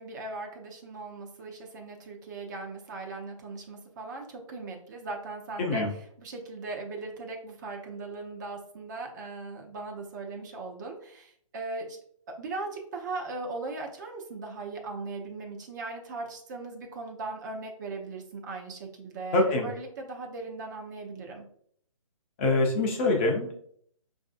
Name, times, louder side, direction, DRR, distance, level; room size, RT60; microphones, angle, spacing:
voice 1, 0.0-5.8 6.2-12.0 12.4-21.4, right 3 dB, 35° right, 1 dB, 0.6 m, -38 dB
voice 2, 5.6-5.9 19.3-19.7 22.4-23.5, left 2 dB, 20° left, 0 dB, 0.5 m, -24 dB
5.0 x 2.6 x 2.4 m, 0.64 s
figure-of-eight pair, 140°, 18 cm